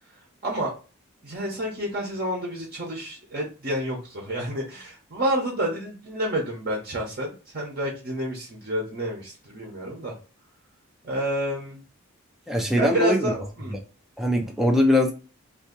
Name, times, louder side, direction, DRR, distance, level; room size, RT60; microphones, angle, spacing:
voice 1, 0.4-0.7 1.2-10.1 11.0-11.8 12.8-13.7, right 1 dB, 40° right, -1 dB, 0.8 m, -29 dB
voice 2, 12.5-13.3 13.7-13.8 14.2-15.1, left 1 dB, ahead, 2 dB, 0.4 m, -21 dB
2.7 x 2.6 x 3.8 m, 0.34 s
head